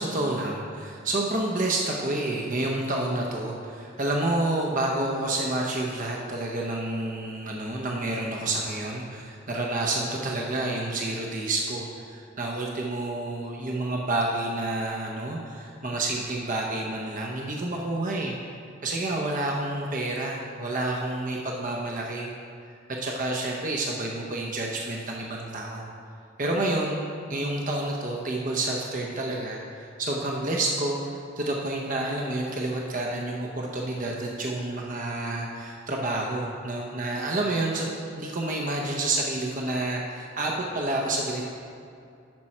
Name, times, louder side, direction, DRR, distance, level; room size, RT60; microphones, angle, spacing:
voice 1, 0.0-18.3 18.8-22.3 22.9-25.9 26.4-27.0 27.3-31.0 31.4-37.9 38.1-41.5, right 2 dB, 45° right, -1 dB, 0.8 m, -29 dB
10.5 x 6.1 x 4.3 m, 2.4 s
head